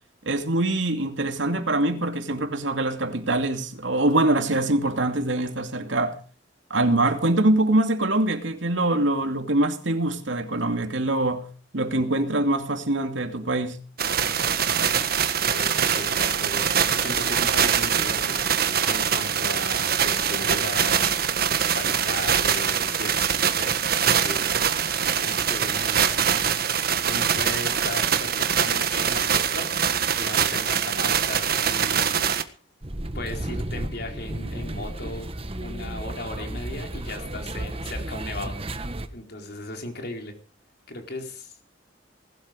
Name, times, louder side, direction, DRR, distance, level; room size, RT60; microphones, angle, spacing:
voice 1, 0.2-6.2 6.7-11.5 11.7-13.8, right 2 dB, 75° right, 2.6 m, -24 dB
sound 1, 14.0-32.4, right 8 dB, 55° right, 1.5 m, -23 dB
voice 2, 15.5-18.4 18.9-23.3 23.6-23.7 24.2-24.4 25.2-26.2 27.0-29.7 30.2-32.3 33.1-35.3 35.6-38.5 39.1-40.3 40.9-41.6, left 2 dB, 55° left, 4.3 m, -36 dB
sound 2, 32.8-39.1, right 1 dB, 30° right, 1.4 m, -33 dB
19.5 x 12.5 x 5.1 m
head